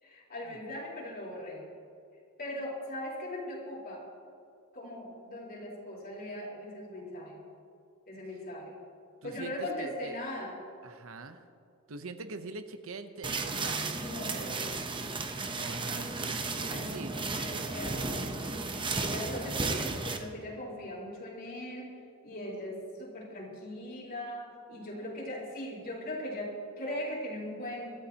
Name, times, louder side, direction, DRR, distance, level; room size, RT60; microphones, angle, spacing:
voice 1, 0.0-1.6 2.4-4.0 4.7-7.4 8.1-8.8 9.2-10.6 14.0-14.7 16.6-22.0 22.2-28.0, left 1 dB, 45° left, -4 dB, 3.8 m, -39 dB
voice 2, 9.2-10.2 10.8-11.4 11.9-13.8 15.5-16.4 16.9-17.2, right 3 dB, 70° right, 9 dB, 0.8 m, -43 dB
sound 1, 13.2-20.2, right 3 dB, 25° right, 0.9 m, -34 dB
23.5 x 13.0 x 2.9 m, 2.5 s
head